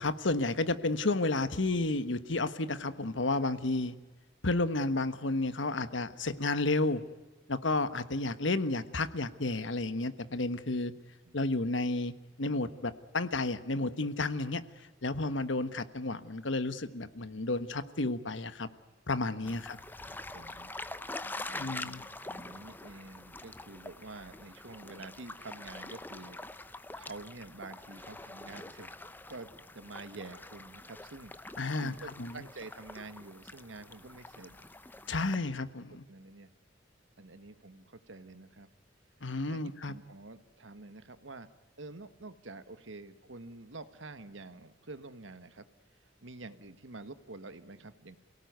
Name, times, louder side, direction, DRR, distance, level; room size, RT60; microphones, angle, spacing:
voice 1, 0.0-3.9 4.4-7.0 7.5-10.9 11.3-12.1 12.4-14.6 15.0-18.7 19.1-19.8 21.6-22.1 31.6-32.4 35.1-36.0 39.2-39.9, left 2 dB, 75° left, 13 dB, 1.3 m, -31 dB
sound 1, 19.4-35.4, left 2 dB, 10° left, 0.7 m, -45 dB
voice 2, 19.4-19.7 20.1-20.7 21.5-28.9 29.3-34.6 35.3-35.5 36.1-36.5 37.2-38.7 39.5-41.5 41.8-45.7 46.2-48.2, right 3 dB, 80° right, 11 dB, 1.6 m, -48 dB
28.0 x 18.0 x 9.5 m, 1.2 s
head